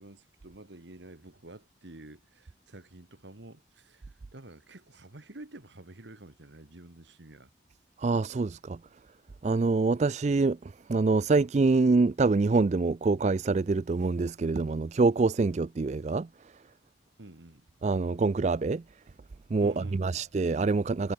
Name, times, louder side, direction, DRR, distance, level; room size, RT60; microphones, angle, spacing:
voice 1, 0.0-7.5 17.2-17.6 19.6-20.2, right 2 dB, 70° right, 1.8 m, -49 dB
voice 2, 8.0-8.8 9.4-16.3 17.8-18.8 19.5-21.1, right 3 dB, 35° right, 0.4 m, -25 dB
head